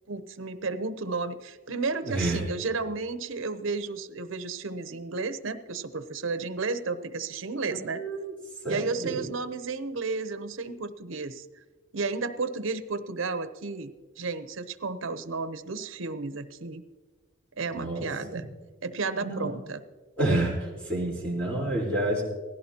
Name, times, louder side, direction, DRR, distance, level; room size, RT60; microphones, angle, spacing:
voice 1, 0.1-8.0 8.7-11.5 11.9-16.8 17.6-18.4 18.8-19.8, right 4 dB, 80° right, 12 dB, 0.8 m, -32 dB
voice 2, 2.1-2.4 7.7-8.3 8.6-9.2 17.7-18.4 19.2-19.6 20.2-22.2, right 2 dB, 5° left, -5 dB, 4.0 m, -29 dB
18.0 x 16.0 x 2.9 m, 1.3 s
head